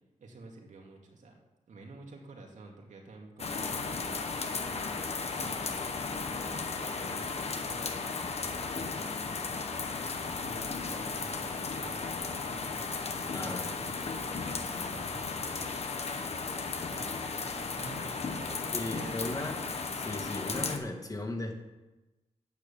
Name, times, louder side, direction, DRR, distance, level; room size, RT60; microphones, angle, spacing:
voice 1, 0.2-1.4 1.7-9.6 10.0-16.6 16.9-19.3, right 3 dB, 85° right, 1 dB, 2.2 m, -50 dB
sound 1, 3.4-20.8, left 4 dB, 60° left, 1.2 m, -35 dB
voice 2, 13.3-13.6 18.7-19.6 19.9-21.6, left 2 dB, 30° left, 3 dB, 1.8 m, -36 dB
9.6 x 9.0 x 7.0 m, 1.1 s
wide cardioid pair, 105°, 12 cm